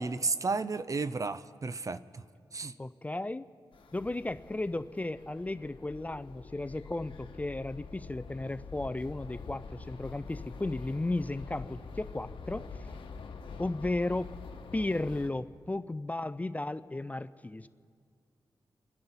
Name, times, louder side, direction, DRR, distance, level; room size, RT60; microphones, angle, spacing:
voice 1, 0.0-2.2 2.5-2.7, right 4 dB, 40° right, 14 dB, 0.5 m, -33 dB
voice 2, 2.8-3.4 3.9-12.7 13.6-14.3 14.7-17.7, left 2 dB, 15° left, 14 dB, 0.4 m, -34 dB
sound 1, 3.7-15.3, left 4 dB, 75° left, 1.1 m, -46 dB
30.0 x 10.5 x 4.1 m, 2.2 s
wide cardioid pair, 90°, 9 cm